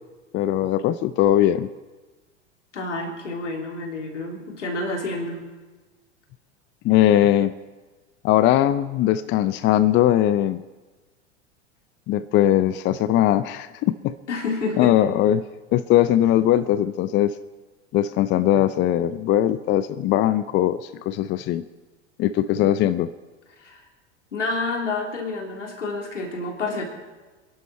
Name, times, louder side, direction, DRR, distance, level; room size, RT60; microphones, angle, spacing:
voice 1, 0.3-1.7 6.8-7.5 8.2-10.6 12.1-14.1 14.8-15.4 15.7-17.3 17.9-21.6 22.2-23.1, left 12 dB, 30° left, 13 dB, 0.6 m, -20 dB
voice 2, 2.7-5.4 14.3-14.9 23.6-23.8 24.3-26.8, left 3 dB, 80° left, 0 dB, 3.6 m, -29 dB
28.5 x 11.5 x 4.3 m, 1.3 s
hypercardioid pair, 90°, 36 cm